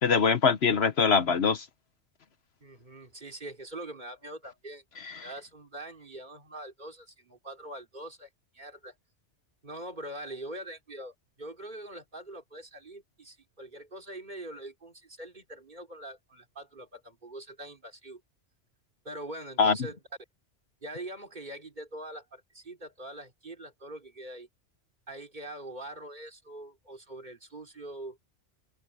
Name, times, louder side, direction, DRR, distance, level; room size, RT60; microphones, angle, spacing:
voice 1, 0.0-1.7 5.0-5.3 19.6-19.8, left 5 dB, 65° left, 1.2 m, -23 dB
voice 2, 2.6-4.8 5.2-8.3 8.5-8.9 9.6-18.2 19.0-20.0 20.8-24.5 25.1-28.2, right 1 dB, 40° right, 3.2 m, -43 dB
omnidirectional pair, 1.2 m